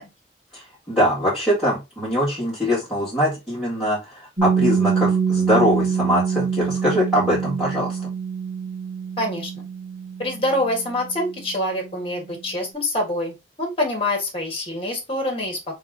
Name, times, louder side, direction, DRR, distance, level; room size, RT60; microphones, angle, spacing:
voice 1, 0.5-8.0, equal, 5° right, -10 dB, 2.0 m, -22 dB
Piano, 4.4-11.7, right 6 dB, 50° right, 1.8 m, -25 dB
voice 2, 9.2-9.5 10.2-15.6, left 1 dB, 30° left, 2 dB, 1.6 m, -25 dB
3.8 x 3.6 x 3.7 m, 0.24 s
head